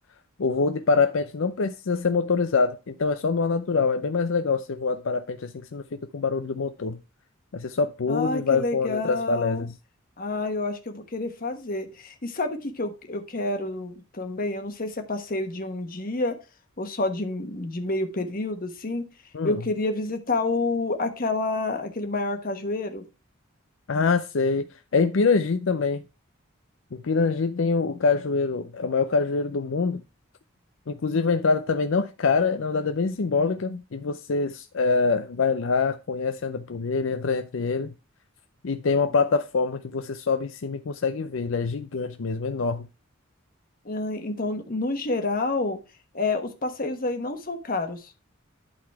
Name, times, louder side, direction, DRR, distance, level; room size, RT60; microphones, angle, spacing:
voice 1, 0.4-7.0 7.5-9.7 19.3-19.6 23.9-24.7 24.9-26.0 26.9-30.0 30.9-37.9 38.6-42.9, left 4 dB, 70° left, 0.5 m, -25 dB
voice 2, 8.1-9.6 10.2-16.4 16.8-19.1 19.4-23.0 43.8-45.8 46.1-48.1, left 2 dB, 45° left, 1.3 m, -29 dB
11.5 x 4.0 x 4.6 m
head